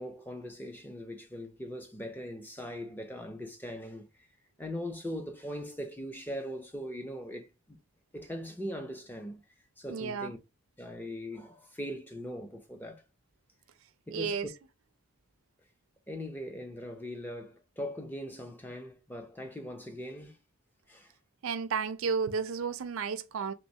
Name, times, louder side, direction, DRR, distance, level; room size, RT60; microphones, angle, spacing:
voice 1, 0.0-4.3 4.6-7.8 8.1-9.4 9.8-10.4 10.8-13.0 14.1-14.5 16.1-20.4 20.9-21.1, equal, 10° left, 0.4 m, -40 dB
voice 2, 9.9-10.3 14.1-14.5 21.4-23.5, right 6 dB, 70° right, 0.4 m, -32 dB
3.1 x 3.1 x 2.7 m
head